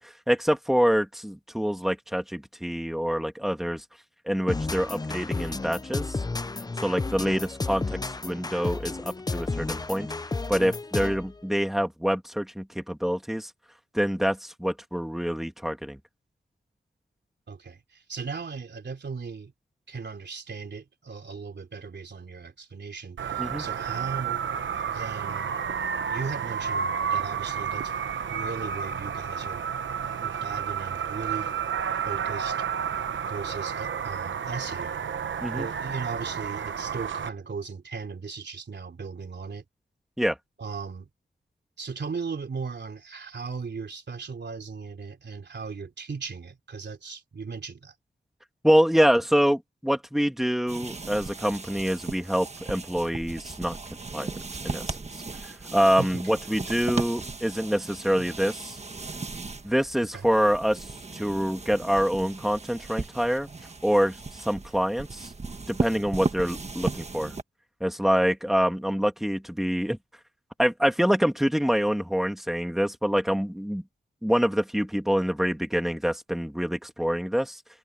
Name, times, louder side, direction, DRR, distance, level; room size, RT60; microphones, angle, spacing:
voice 1, 0.0-3.8 4.3-6.2 6.8-10.1 10.5-13.5 13.9-16.0 23.4-23.6 35.4-35.7 40.2-40.4 48.6-53.8 54.1-54.4 54.6-54.9 55.4-58.8 59.6-60.9 61.1-63.5 63.8-65.3 65.7-67.4 67.8-70.0 70.6-73.8 74.2-77.6, equal, ahead, 2.6 m, -26 dB
sound 1, 4.5-11.3, left 3 dB, 20° left, 0.5 m, -32 dB
voice 2, 17.5-19.5 19.9-24.4 24.8-25.5 26.1-27.9 28.3-31.5 32.0-32.6 33.3-35.1 35.5-39.6 40.6-41.1 41.8-47.9 56.0-56.4 60.1-60.3, right 5 dB, 65° right, 3.5 m, -37 dB
sound 2, 23.2-37.3, right 7 dB, 80° right, 0.9 m, -31 dB
sound 3, 50.7-67.4, right 3 dB, 35° right, 1.4 m, -36 dB
wide cardioid pair, 135°, 20 cm